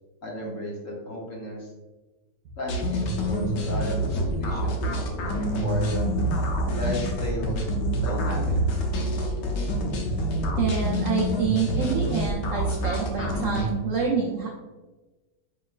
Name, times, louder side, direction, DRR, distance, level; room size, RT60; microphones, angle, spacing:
voice 1, 0.2-1.7 2.6-5.9 6.7-7.7 7.9-8.6, left 1 dB, 55° left, -3 dB, 1.1 m, -34 dB
sound 1, 2.7-13.7, right 1 dB, 75° left, 1.3 m, -26 dB
voice 2, 10.6-14.5, right 6 dB, 80° right, -1 dB, 0.7 m, -27 dB
5.2 x 3.0 x 2.3 m, 1.2 s
omnidirectional pair, 2.0 m